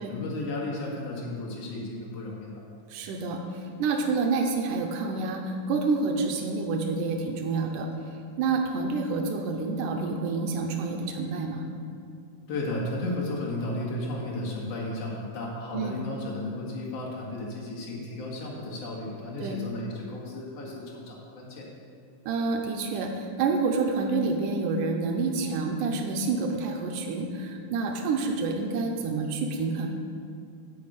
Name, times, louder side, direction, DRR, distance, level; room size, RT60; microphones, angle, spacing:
voice 1, 0.1-2.6 12.5-21.7, left 2 dB, 55° left, -4 dB, 2.8 m, -34 dB
voice 2, 2.9-7.9 8.4-11.7 15.7-15.9 19.4-19.6 22.3-29.9, right 4 dB, 90° right, 2 dB, 2.4 m, -28 dB
8.7 x 6.3 x 8.2 m, 2.4 s
omnidirectional pair, 3.7 m